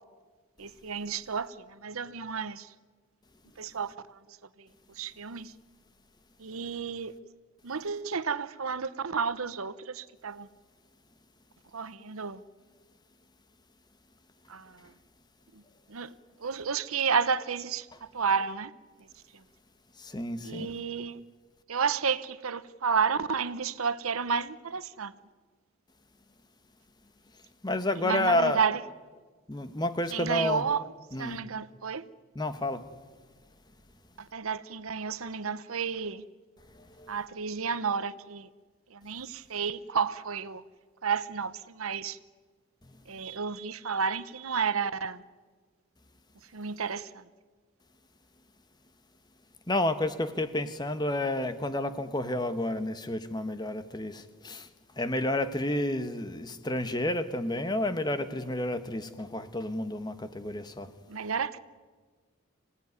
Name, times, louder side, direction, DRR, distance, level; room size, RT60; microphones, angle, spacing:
voice 1, 0.6-2.7 3.6-4.7 4.9-5.5 6.4-7.1 7.6-10.5 11.7-12.4 14.5-14.9 15.5-15.6 15.9-16.1 16.4-18.7 19.0-19.1 19.3-19.4 20.4-21.2 21.7-25.1 28.0-28.8 30.1-30.8 31.2-32.1 34.2-36.2 37.1-38.5 38.9-40.6 41.0-42.2 43.1-45.2 46.5-47.3 61.1-61.6, right 6 dB, 90° right, 0.9 m, -31 dB
voice 2, 20.0-20.7 27.6-28.6 29.5-30.6 31.1-31.4 32.3-32.8 37.0-37.1 49.7-54.7 55.0-60.9, left 1 dB, 20° left, 1.1 m, -30 dB
26.0 x 17.0 x 9.6 m
head